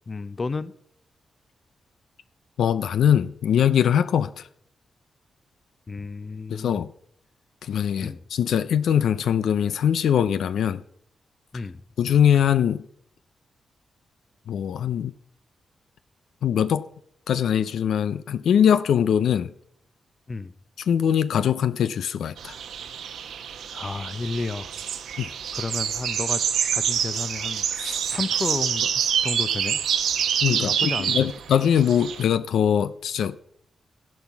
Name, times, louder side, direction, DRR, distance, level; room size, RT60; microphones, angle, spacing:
voice 1, 0.1-0.8 5.9-6.8 8.0-8.2 11.5-11.8 20.3-20.5 23.7-24.7 25.5-26.4 26.7-28.9 29.2-29.8 30.4-31.3, left 3 dB, 40° left, 0.7 m, -32 dB
voice 2, 2.6-4.5 6.5-6.9 7.6-10.8 12.0-12.9 14.5-15.1 16.4-16.9 17.3-19.5 20.9-22.6 25.2-25.3 30.4-33.4, left 9 dB, 85° left, 0.5 m, -22 dB
sound 1, 22.4-32.2, right 8 dB, 90° right, 1.1 m, -27 dB
13.0 x 10.5 x 5.9 m
cardioid pair, 80°, 0 cm